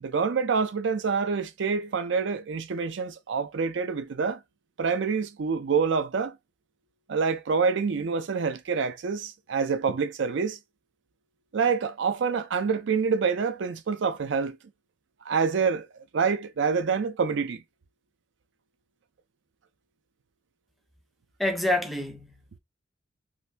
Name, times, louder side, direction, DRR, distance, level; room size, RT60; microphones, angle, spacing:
voice 1, 0.0-4.4 4.8-6.3 7.1-10.6 11.5-14.6 15.3-15.9 16.1-17.6, right 5 dB, 65° right, 0.4 m, -26 dB
voice 2, 21.4-22.6, left 1 dB, ahead, 0.5 m, -28 dB
2.6 x 2.6 x 3.2 m
head